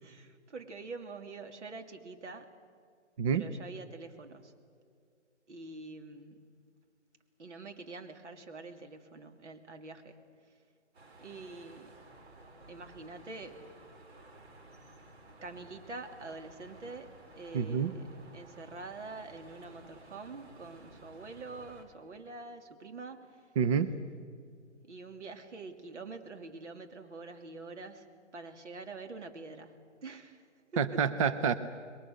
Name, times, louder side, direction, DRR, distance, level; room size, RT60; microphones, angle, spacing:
voice 1, 0.0-2.5 3.3-4.5 5.5-6.4 7.4-10.2 10.4-10.5 11.2-12.0 12.7-13.7 15.4-17.1 17.4-18.1 18.3-23.5 24.8-28.1 28.3-29.7 30.0-30.4 30.7-31.0, right 3 dB, 75° right, 6 dB, 3.0 m, -46 dB
sound 1, 10.9-21.8, right 2 dB, 60° right, 4.7 m, -55 dB
voice 2, 17.5-17.9 23.6-23.9 30.8-31.6, right 7 dB, 30° right, 11 dB, 0.7 m, -28 dB
28.0 x 22.0 x 6.6 m, 2.2 s
hypercardioid pair, 155°, 35 cm